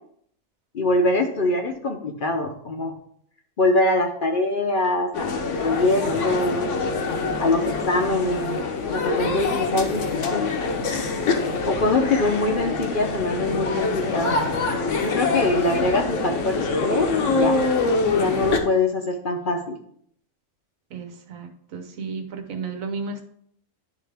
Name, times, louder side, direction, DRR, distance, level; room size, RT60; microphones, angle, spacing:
voice 1, 0.7-2.9 3.6-6.7 7.4-10.5 11.6-14.4 15.0-17.6 18.1-19.8, left 2 dB, 50° left, 3 dB, 0.7 m, -23 dB
sound 1, 5.1-18.6, left 4 dB, 65° left, 1.1 m, -25 dB
voice 2, 20.9-23.2, right 4 dB, 75° right, 5 dB, 1.3 m, -33 dB
10.5 x 3.7 x 3.4 m, 0.66 s
omnidirectional pair, 1.4 m